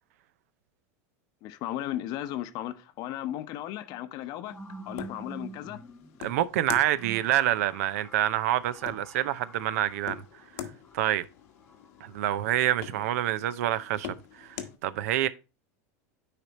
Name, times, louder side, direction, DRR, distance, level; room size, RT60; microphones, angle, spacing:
voice 1, 1.4-4.6 4.9-5.8 12.9-13.0, left 13 dB, 55° left, 0.8 m, -35 dB
sound 1, 3.1-3.2 3.9-12.4, right 2 dB, 10° left, 1.2 m, -48 dB
sound 2, 4.5-14.8, left 10 dB, 75° left, 1.1 m, -45 dB
voice 2, 6.2-10.2 10.9-11.2 12.0-15.3, right 13 dB, 75° right, 0.5 m, -27 dB
9.5 x 3.4 x 4.0 m
supercardioid pair, 115°, 8 cm